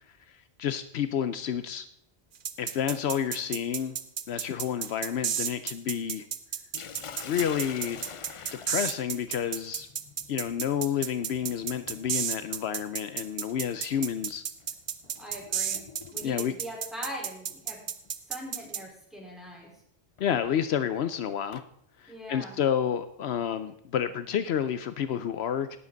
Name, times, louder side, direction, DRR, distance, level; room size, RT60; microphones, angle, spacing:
voice 1, 0.3-1.9 2.6-4.0 4.3-6.3 7.3-8.0 8.5-9.9 10.3-14.4 16.2-16.5 20.2-21.6 22.0-25.8, left 9 dB, 75° left, 12 dB, 0.9 m, -30 dB
sound 1, 2.4-18.8, right 8 dB, 55° right, 0.8 m, -32 dB
Sink (filling or washing), 6.7-16.7 17.8-18.1 18.6-18.7 20.2-21.7, left 7 dB, 55° left, 0.3 m, -46 dB
voice 2, 15.0-15.8 16.1-17.8 18.3-19.7 22.1-22.6, equal, ahead, -4 dB, 4.3 m, -41 dB
18.5 x 7.4 x 3.9 m, 0.72 s
omnidirectional pair, 1.1 m